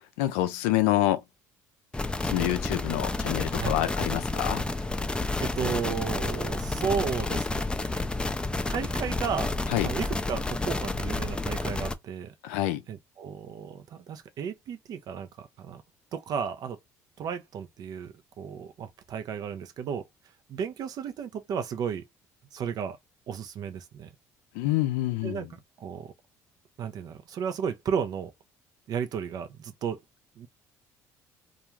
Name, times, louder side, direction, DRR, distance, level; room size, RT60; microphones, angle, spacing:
voice 1, 0.2-1.2 2.2-4.6 9.7-9.9 12.4-12.8 24.5-25.5, left 15 dB, 80° left, 0.4 m, -27 dB
sound 1, 1.9-11.9, left 2 dB, 10° left, 0.4 m, -30 dB
voice 2, 5.4-7.6 7.9-8.0 8.7-9.5 9.8-12.3 12.9-15.3 15.6-15.8 16.1-16.8 17.2-20.0 20.5-22.0 22.5-23.0 23.3-24.1 25.2-25.5 25.8-26.1 26.8-28.3 28.9-30.0 30.4-30.5, right 7 dB, 55° right, 0.6 m, -33 dB
2.4 x 2.2 x 3.0 m
hypercardioid pair, 65°, 8 cm